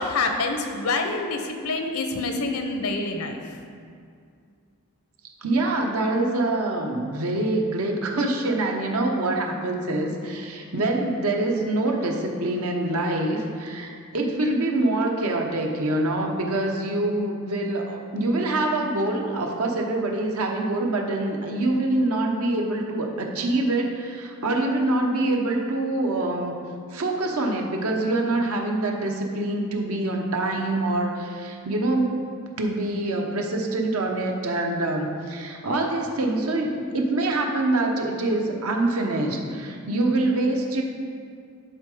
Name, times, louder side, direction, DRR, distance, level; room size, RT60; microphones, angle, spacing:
voice 1, 0.0-3.6, left 3 dB, 80° left, 4 dB, 0.9 m, -27 dB
voice 2, 5.4-26.6 26.9-32.2 32.6-40.8, right 2 dB, 80° right, 1 dB, 1.0 m, -25 dB
11.0 x 3.8 x 4.9 m, 2.3 s
head